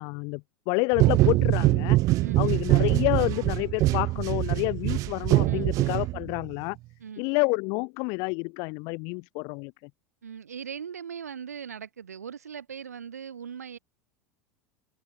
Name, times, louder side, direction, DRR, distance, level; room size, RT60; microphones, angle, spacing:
voice 1, 0.0-2.0 2.4-6.8 7.2-9.7, left 33 dB, 50° left, 0.5 m, -29 dB
sound 1, 1.0-6.5, right 18 dB, 40° right, 0.4 m, -23 dB
voice 2, 2.2-2.6 5.5-6.0 7.0-7.2 10.2-13.8, right 7 dB, 80° right, 5.8 m, -40 dB
figure-of-eight pair, 80°, 8 cm